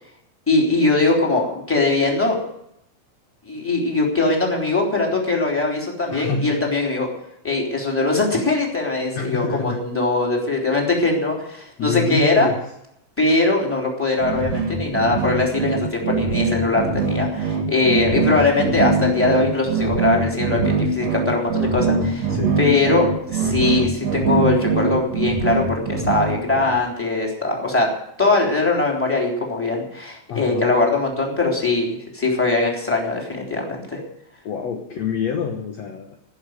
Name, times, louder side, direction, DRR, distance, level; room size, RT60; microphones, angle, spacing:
voice 1, 0.5-2.4 3.5-7.1 7.4-12.5 13.2-27.9 28.2-34.0, left 3 dB, 5° left, -1 dB, 2.9 m, -21 dB
voice 2, 6.1-6.6 9.1-9.8 11.8-12.6 18.1-18.3 22.3-22.6 30.3-30.7 34.4-36.2, left 5 dB, 70° left, 3 dB, 1.6 m, -27 dB
sound 1, 14.2-26.8, right 4 dB, 45° right, 2.6 m, -22 dB
18.0 x 7.2 x 9.5 m, 0.78 s
omnidirectional pair, 4.8 m